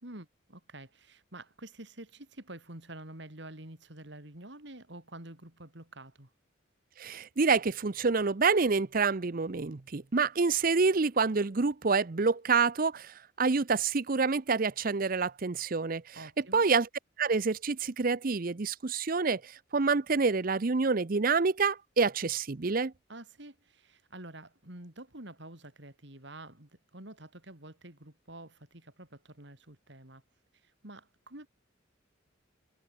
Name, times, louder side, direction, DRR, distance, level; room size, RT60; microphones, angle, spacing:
voice 1, 0.0-6.3 16.1-16.6 23.1-30.2 30.6-31.5, right 1 dB, 60° right, 4.2 m, -48 dB
voice 2, 7.0-16.1 16.5-16.9 17.2-22.9, right 4 dB, 45° right, 0.7 m, -27 dB
head